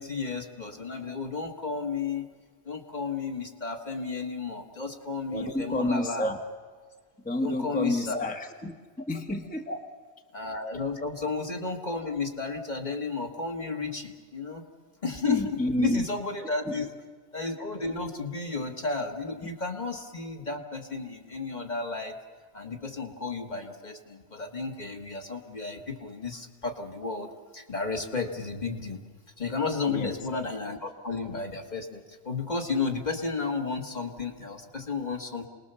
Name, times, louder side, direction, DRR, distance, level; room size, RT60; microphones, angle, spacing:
voice 1, 0.0-2.2 2.7-6.3 7.4-8.3 9.7-9.8 10.3-14.6 15.0-16.9 17.3-22.1 22.5-27.3 27.5-29.0 29.4-35.5, left 4 dB, 40° left, 3 dB, 1.8 m, -33 dB
voice 2, 5.3-6.4 7.2-8.8 9.1-9.7 15.2-16.0 16.7-16.8 29.9-30.2, left 1 dB, 10° left, 4 dB, 1.2 m, -29 dB
28.5 x 20.0 x 6.9 m, 1.5 s
omnidirectional pair, 1.2 m